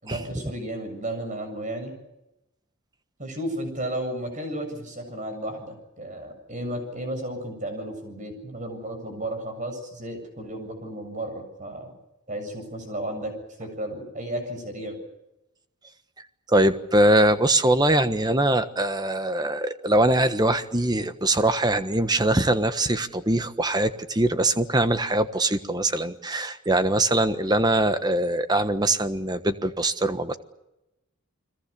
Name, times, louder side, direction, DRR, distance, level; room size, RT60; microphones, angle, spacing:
voice 1, 0.0-1.9 3.2-11.9 12.3-13.3 13.6-15.0, right 1 dB, 35° right, 6 dB, 7.5 m, -33 dB
voice 2, 16.5-30.4, right 1 dB, 20° right, 10 dB, 1.3 m, -22 dB
30.0 x 21.5 x 7.0 m, 0.91 s
head